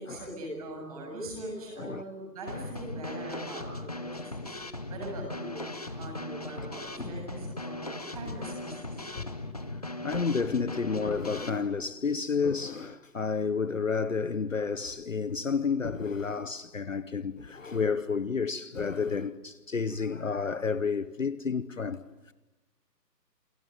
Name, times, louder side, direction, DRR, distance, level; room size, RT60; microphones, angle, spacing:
voice 1, 0.0-4.6 4.9-5.6 5.9-9.1, right 1 dB, 20° right, 7.8 m, -41 dB
Drum kit / Snare drum, 2.5-11.5, left 2 dB, 25° left, 1.0 m, -38 dB
voice 2, 10.0-22.3, left 5 dB, 50° left, 1.0 m, -31 dB
28.5 x 22.5 x 9.3 m
figure-of-eight pair, 170°, 50 cm